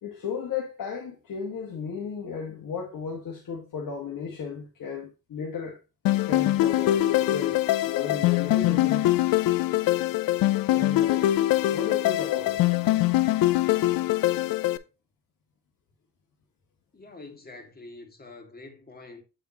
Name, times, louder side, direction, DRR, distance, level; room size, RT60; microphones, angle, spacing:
voice 1, 0.0-5.8 6.1-9.2 10.7-11.3 11.7-12.6, left 6 dB, 70° left, 1.7 m, -34 dB
sound 1, 6.1-14.8, left 15 dB, 90° left, 0.5 m, -23 dB
voice 2, 16.9-19.2, left 2 dB, 25° left, 2.0 m, -45 dB
7.8 x 5.0 x 2.9 m
cardioid pair, 70°, 33 cm